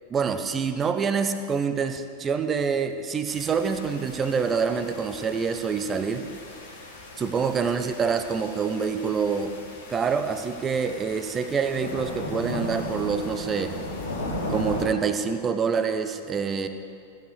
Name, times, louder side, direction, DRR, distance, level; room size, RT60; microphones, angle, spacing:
voice 1, 0.1-6.3 7.2-9.5 9.9-13.7 14.5-16.7, right 6 dB, 20° right, 9 dB, 0.8 m, -26 dB
sound 1, 3.3-14.9, left 1 dB, 65° left, 3.3 m, -36 dB
15.5 x 8.2 x 6.5 m, 2.4 s
figure-of-eight pair, 90°, 0 cm